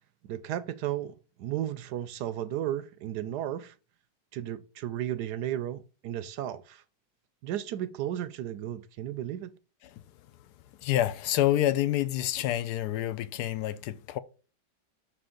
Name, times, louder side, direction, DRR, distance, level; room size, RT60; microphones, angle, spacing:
voice 1, 0.3-3.7 4.3-6.8 7.4-9.5, right 11 dB, 75° right, 1.1 m, -34 dB
voice 2, 10.8-14.2, left 13 dB, 70° left, 1.1 m, -27 dB
6.5 x 4.3 x 3.8 m
omnidirectional pair, 1.9 m